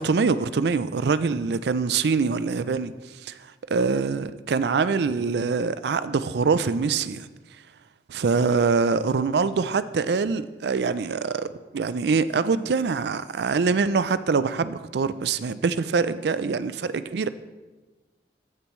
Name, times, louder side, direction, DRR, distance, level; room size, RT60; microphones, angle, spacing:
voice 1, 0.0-2.9 3.2-3.4 3.7-7.3 8.1-17.3, right 4 dB, 65° right, 0.4 m, -24 dB
15.0 x 6.9 x 3.1 m
head